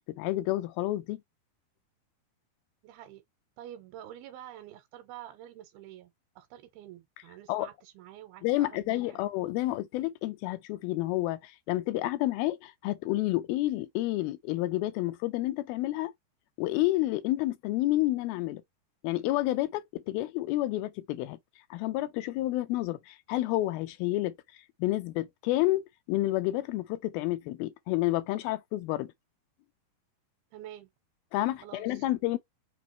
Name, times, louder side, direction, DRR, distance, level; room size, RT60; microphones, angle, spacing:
voice 1, 0.1-1.2 7.5-7.7 8.4-16.1 16.6-18.6 19.0-21.4 21.7-24.3 24.8-29.1 31.3-32.4, left 16 dB, 80° left, 2.5 m, -30 dB
voice 2, 2.8-3.2 3.6-9.2 30.5-30.9 31.6-32.1, right 12 dB, 90° right, 2.5 m, -48 dB
6.1 x 2.5 x 2.9 m
omnidirectional pair, 4.4 m